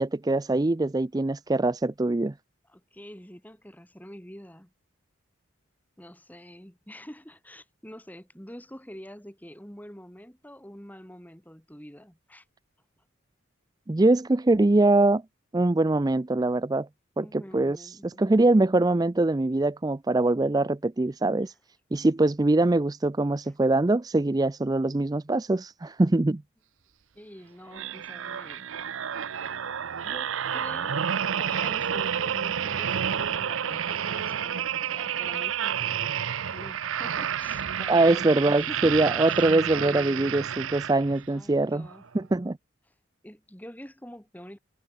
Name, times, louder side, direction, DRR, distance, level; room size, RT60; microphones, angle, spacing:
voice 1, 0.0-2.3 13.9-15.2 15.5-16.9 17.2-21.5 21.9-26.4 37.9-41.9 42.1-42.6, right 2 dB, 20° right, 0.4 m, -23 dB
voice 2, 2.7-4.7 6.0-12.4 17.2-18.4 21.4-21.5 23.4-23.5 27.1-28.7 30.0-31.0 31.4-39.5 39.8-40.5 41.3-42.1 43.2-44.6, equal, 10° left, 3.7 m, -46 dB
sound 1, 27.7-41.3 41.8-42.0, right 8 dB, 70° right, 0.6 m, -30 dB
head